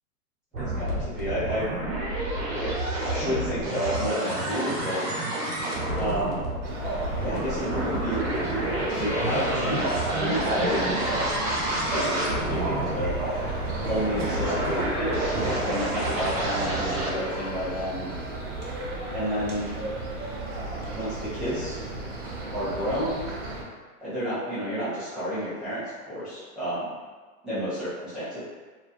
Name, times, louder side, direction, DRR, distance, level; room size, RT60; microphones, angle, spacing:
sound 1, 0.5-17.1, right 1 dB, 90° right, 1.0 m, -29 dB
voice 1, 0.7-1.7 2.6-2.7 3.0-5.0 5.9-6.4 7.2-11.3 11.9-13.2 13.9-18.1 19.1-19.7 20.9-21.8 22.5-23.3 24.0-26.9 27.4-28.4, equal, ahead, -17 dB, 0.4 m, -31 dB
sound 2, 6.6-23.6, right 2 dB, 50° right, 0.8 m, -33 dB
sound 3, 8.4-18.9, left 3 dB, 55° left, 0.7 m, -43 dB
2.5 x 2.2 x 2.5 m, 1.4 s
hypercardioid pair, 130°, 44 cm